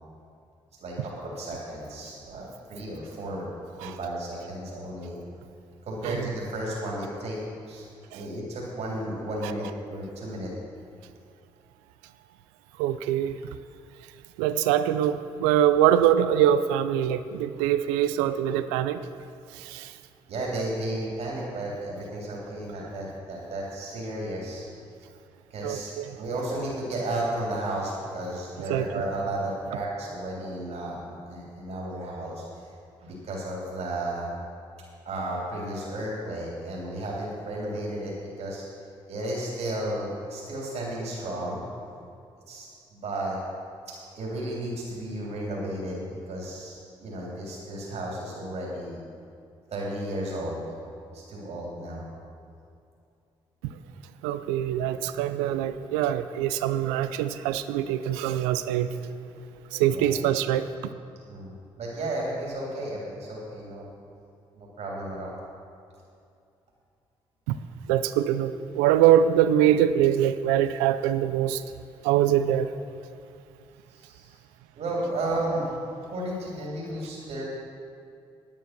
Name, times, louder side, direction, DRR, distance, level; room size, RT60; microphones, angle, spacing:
voice 1, 0.8-3.5 3.7-5.2 5.8-7.4 7.7-7.8 8.1-10.5 20.3-24.7 25.5-32.4 33.0-34.3 35.0-38.6 39.1-41.6 42.5-43.4 44.1-49.0 49.7-50.6 51.1-52.0 59.9-60.1 61.3-61.5 61.8-63.9 64.5-65.3 73.9-74.3 74.7-75.7 76.1-77.5, right 1 dB, 65° right, -4 dB, 3.2 m, -33 dB
voice 2, 12.8-13.4 14.4-19.0 19.5-19.9 25.6-26.1 28.6-29.0 54.2-58.9 59.7-60.7 67.5-67.6 67.9-71.6 72.0-72.7, right 11 dB, 90° right, 12 dB, 0.4 m, -23 dB
11.0 x 9.3 x 6.0 m, 2.5 s
hypercardioid pair, 45°, 12 cm